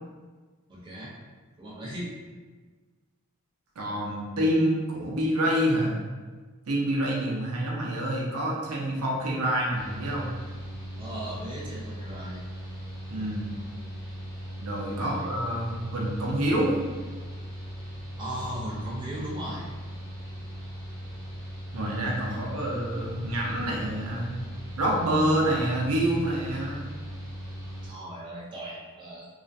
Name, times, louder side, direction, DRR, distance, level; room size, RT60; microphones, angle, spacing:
voice 1, 0.7-1.2 1.6-2.2 11.0-12.4 14.9-15.3 18.2-19.6 22.3-22.6 27.8-29.3, right 1 dB, 20° right, -6 dB, 0.4 m, -37 dB
voice 2, 3.8-6.0 6.7-10.3 13.1-13.5 14.6-16.7 21.7-24.3 24.8-26.9, right 1 dB, 85° right, -3 dB, 0.6 m, -27 dB
Mechanical fan, 9.7-27.9, equal, 20° left, 0.6 m, -39 dB
2.4 x 2.1 x 2.5 m, 1.4 s
head